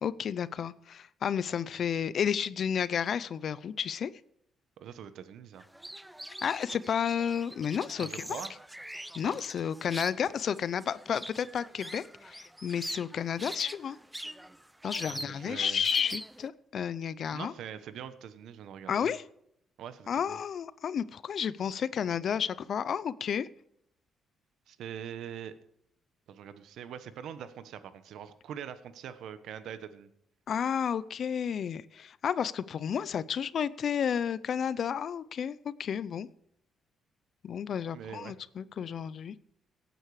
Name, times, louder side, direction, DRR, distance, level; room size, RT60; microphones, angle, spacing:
voice 1, 0.0-4.1 6.4-8.4 9.1-14.0 14.8-17.5 18.9-19.2 20.1-23.5 30.5-36.3 37.4-39.3, left 8 dB, 60° left, 18 dB, 0.6 m, -32 dB
voice 2, 4.8-5.6 8.0-8.5 9.2-9.4 15.1-15.8 17.3-19.1 19.8-20.4 24.7-25.5 26.3-30.1 37.9-38.3, right 9 dB, 75° right, 12 dB, 1.1 m, -43 dB
sound 1, 5.6-16.5, right 1 dB, 5° right, 0.6 m, -43 dB
17.5 x 9.1 x 4.9 m, 0.73 s
cardioid pair, 90°, 0 cm